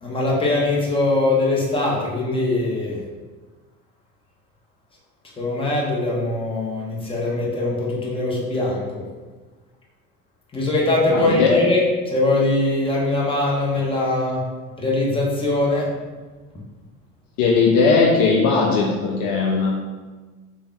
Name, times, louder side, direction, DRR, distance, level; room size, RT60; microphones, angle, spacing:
voice 1, 0.0-3.0 5.4-9.1 10.5-14.5 14.8-15.9, left 2 dB, 15° left, -4 dB, 0.7 m, -21 dB
voice 2, 11.1-11.6 17.4-19.8, left 4 dB, 50° left, 0 dB, 0.5 m, -18 dB
3.3 x 2.2 x 2.2 m, 1.3 s
hypercardioid pair, 65°, 41 cm